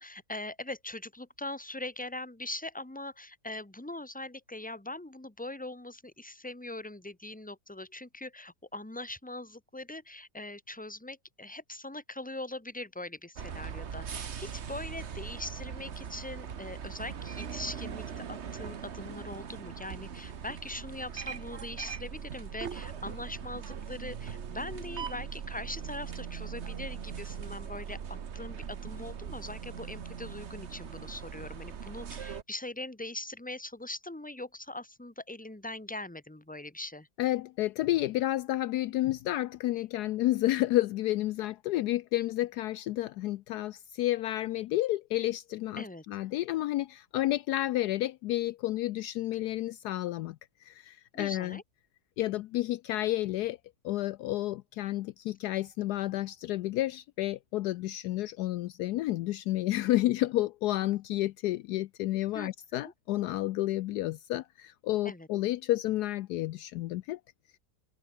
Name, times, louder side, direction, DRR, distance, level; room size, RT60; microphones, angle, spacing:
voice 1, 0.0-37.1 45.8-46.0 51.1-51.6 62.3-62.5 62.8-62.9 65.0-65.3, left 2 dB, 5° left, 1.9 m, -41 dB
sound 1, 13.3-32.4, right 7 dB, 45° right, 1.3 m, -40 dB
voice 2, 37.2-50.4 50.6-51.6 52.2-53.6 53.8-67.2, left 15 dB, 75° left, 1.1 m, -30 dB
omnidirectional pair, 1.8 m